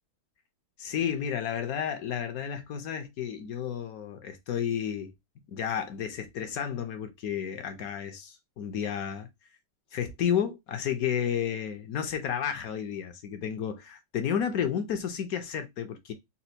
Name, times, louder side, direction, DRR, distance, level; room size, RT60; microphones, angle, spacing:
voice 1, 0.8-5.1 5.5-9.3 9.9-16.1, left 8 dB, 65° left, 1.1 m, -31 dB
4.2 x 2.2 x 2.7 m
omnidirectional pair, 1.9 m